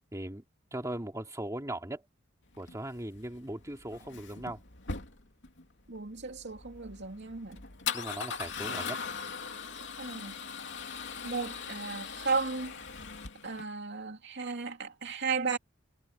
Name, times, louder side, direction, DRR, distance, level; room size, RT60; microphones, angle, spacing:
voice 1, 0.1-0.4 0.7-2.0 2.6-4.6 7.9-9.0, right 1 dB, 15° right, 3.0 m, -38 dB
Male speech man speaking / Car / Engine starting, 2.5-13.6, left 6 dB, 60° left, 3.1 m, -40 dB
voice 2, 5.9-7.6 8.6-8.8 10.0-10.3 11.2-12.7 13.4-15.6, right 4 dB, 60° right, 2.6 m, -34 dB
head